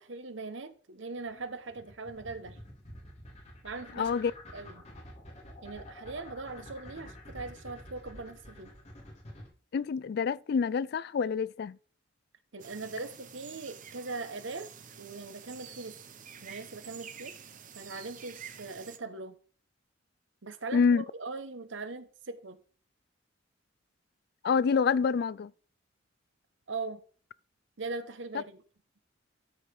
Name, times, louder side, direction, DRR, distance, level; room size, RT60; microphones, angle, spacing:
voice 1, 0.0-2.6 3.6-4.1 4.5-4.8 5.6-8.7 12.5-14.7 15.0-15.9 16.4-17.3 17.7-19.4 20.4-22.6 26.7-27.0 27.8-28.6, right 3 dB, 70° right, 1.0 m, -40 dB
sound 1, 1.2-9.5, left 1 dB, 35° left, 2.8 m, -48 dB
voice 2, 4.0-4.3 9.7-11.8 20.7-21.0 24.4-25.5, left 5 dB, 55° left, 0.3 m, -27 dB
sound 2, 12.6-19.0, right 8 dB, 40° right, 0.8 m, -49 dB
12.5 x 4.8 x 5.2 m
head